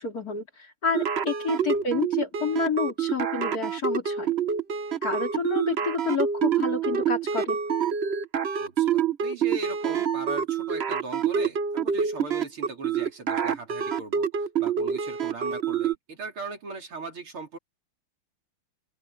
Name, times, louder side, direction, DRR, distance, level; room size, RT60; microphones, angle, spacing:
voice 1, 0.0-4.3 5.0-7.6, left 5 dB, 40° left, 3.4 m, -29 dB
sound 1, 0.9-15.9, right 7 dB, 50° right, 0.8 m, -27 dB
voice 2, 1.6-2.0 8.6-17.6, right 3 dB, 70° right, 4.5 m, -39 dB
open air
omnidirectional pair, 2.4 m